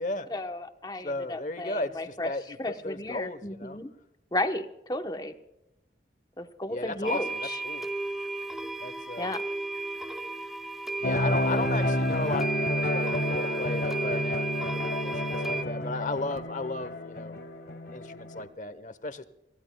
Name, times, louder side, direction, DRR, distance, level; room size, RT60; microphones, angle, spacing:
voice 1, 0.3-2.3 2.6-3.9 4.3-5.3 6.4-7.6 9.2-9.4, left 1 dB, 20° left, 6 dB, 1.0 m, -33 dB
voice 2, 1.0-2.6 2.8-3.8 6.7-7.8 8.8-9.3 11.0-17.4 17.9-19.2, left 2 dB, 45° left, 13 dB, 1.0 m, -35 dB
sound 1, 7.1-15.6, right 2 dB, 5° right, 0.7 m, -34 dB
sound 2, 11.0-18.5, left 1 dB, 65° left, 1.4 m, -30 dB
27.5 x 16.0 x 2.3 m, 0.91 s
head